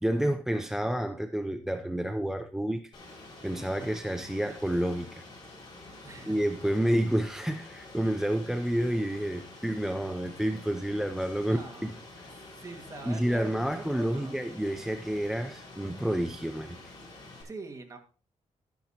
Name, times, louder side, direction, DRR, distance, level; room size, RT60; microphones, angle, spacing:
voice 1, 0.0-2.8 3.4-5.2 6.3-11.9 13.0-16.8, right 1 dB, 5° right, 0.4 m, -29 dB
Rain, 2.9-17.4, left 2 dB, 35° left, 5.2 m, -48 dB
voice 2, 6.0-6.4 11.4-11.9 12.6-14.4 17.4-18.0, right 3 dB, 25° right, 1.7 m, -44 dB
12.0 x 10.0 x 2.8 m
wide cardioid pair, 165°, 12 cm